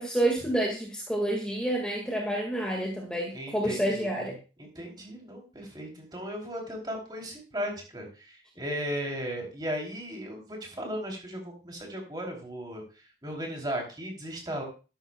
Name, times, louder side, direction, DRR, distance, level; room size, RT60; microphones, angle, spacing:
voice 1, 0.0-4.3, right 1 dB, 5° left, -1 dB, 1.8 m, -29 dB
voice 2, 3.3-4.3 4.6-14.6, equal, 25° right, 1 dB, 3.0 m, -36 dB
12.0 x 11.5 x 2.3 m, 0.32 s
head